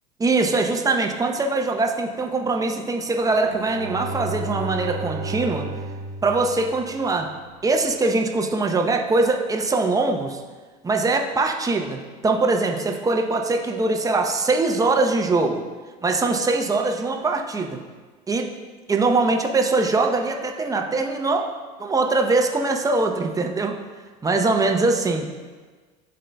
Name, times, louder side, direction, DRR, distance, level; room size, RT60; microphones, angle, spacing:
voice 1, 0.2-5.7 6.2-7.3 7.6-10.4 10.8-15.6 16.0-17.8 18.3-18.5 18.9-21.5 21.8-23.8 24.2-25.3, right 3 dB, 15° right, 3 dB, 0.7 m, -22 dB
Bowed string instrument, 3.3-7.4, right 2 dB, 65° right, 0.8 m, -33 dB
11.0 x 3.8 x 2.3 m, 1.4 s
hypercardioid pair, 85°, 21 cm